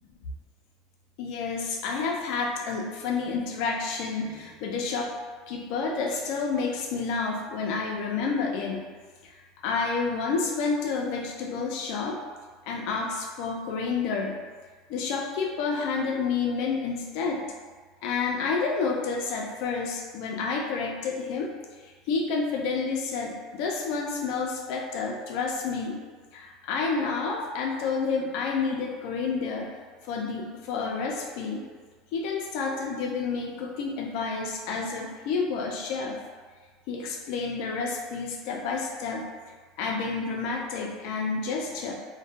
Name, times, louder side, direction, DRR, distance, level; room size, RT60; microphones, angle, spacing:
voice 1, 1.2-5.1 5.5-8.8 9.2-9.3 9.6-12.2 12.7-14.4 14.9-17.4 18.0-21.5 21.8-26.0 26.3-29.8 30.0-31.7 32.1-36.2 36.9-39.3 39.8-41.9, left 4 dB, 65° left, 0 dB, 0.4 m, -29 dB
2.2 x 2.2 x 2.7 m, 1.5 s
supercardioid pair, 115°, 0 cm